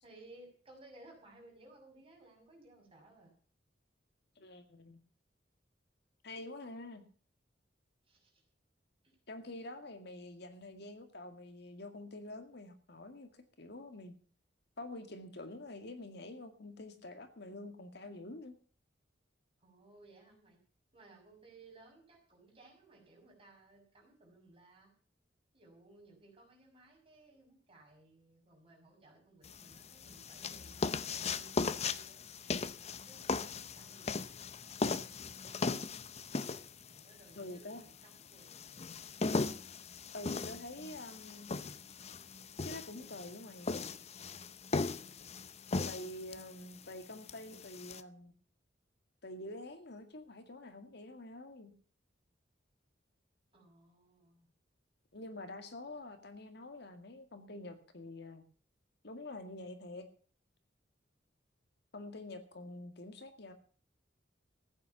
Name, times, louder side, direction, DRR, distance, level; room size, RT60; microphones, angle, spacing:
voice 1, 0.0-3.3 8.1-8.4 19.6-20.6 20.9-24.9 25.5-32.2 33.0-35.7 36.6-38.7 53.5-54.5, right 2 dB, 30° right, 0 dB, 6.1 m, -60 dB
voice 2, 4.4-5.0 6.2-7.0 9.3-13.3 13.6-14.2 14.8-18.6 37.3-37.9 40.1-41.5 42.6-43.7 45.9-48.3 49.2-51.7 55.1-58.4 59.0-60.1 61.9-63.5, left 2 dB, 65° left, 7 dB, 2.0 m, -47 dB
sound 1, 29.4-48.0, left 4 dB, 35° left, 0.7 m, -38 dB
15.0 x 8.8 x 7.0 m, 0.42 s
head